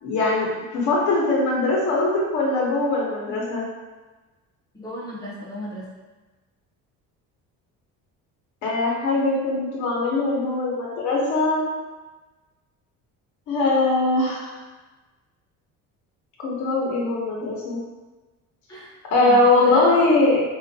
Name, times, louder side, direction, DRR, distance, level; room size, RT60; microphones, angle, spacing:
voice 1, 0.0-3.7 8.6-11.6 13.5-14.5 16.4-17.8 19.1-20.4, left 2 dB, 60° left, -4 dB, 1.0 m, -21 dB
voice 2, 4.7-6.0 18.7-18.9 19.2-20.2, left 1 dB, 10° left, -6 dB, 0.8 m, -35 dB
4.2 x 2.5 x 2.7 m, 1.2 s
cardioid pair, 150°, 33 cm